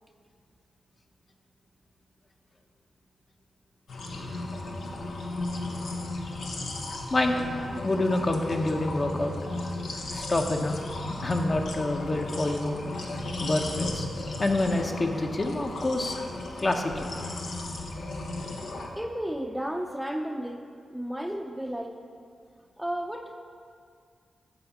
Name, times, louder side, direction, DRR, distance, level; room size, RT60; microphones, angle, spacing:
sound 1, 3.9-18.9, left 2 dB, 80° left, 1.0 m, -35 dB
voice 1, 7.1-7.5 7.8-9.3 10.1-10.8 11.2-12.8 13.4-14.1 14.4-16.1 16.6-17.1, left 2 dB, 40° left, 3 dB, 0.9 m, -27 dB
voice 2, 19.0-20.6 20.9-22.0 22.8-23.4, equal, 5° right, 3 dB, 0.6 m, -33 dB
9.2 x 4.8 x 7.2 m, 2.2 s
cardioid pair, 70°, 0 cm